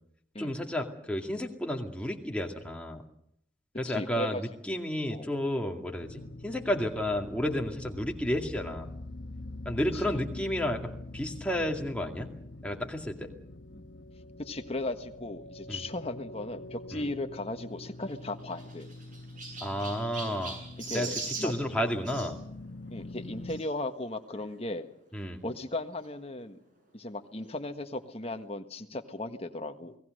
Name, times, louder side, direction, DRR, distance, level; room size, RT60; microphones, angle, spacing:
voice 1, 0.4-3.0 3.8-8.9 9.7-12.3 12.6-13.3 15.7-15.8 16.9-17.0 19.6-20.6 20.9-22.4 25.1-25.4, left 1 dB, 5° left, 2 dB, 2.2 m, -32 dB
voice 2, 3.8-4.4 4.7-4.8 5.1-5.3 9.9-10.2 11.8-11.9 13.7-13.9 14.4-18.9 20.9-21.5 22.2-22.3 22.9-24.9 25.4-26.6 26.9-29.9, left 2 dB, 30° left, 7 dB, 1.4 m, -37 dB
sound 1, 6.0-23.6, left 2 dB, 65° left, 1.5 m, -44 dB
Chirp tweet, 18.0-22.3 23.5-23.7 24.4-24.5 24.7-24.8 26.0-26.1, right 3 dB, 45° right, 7.9 m, -41 dB
29.0 x 18.5 x 6.6 m, 0.71 s
head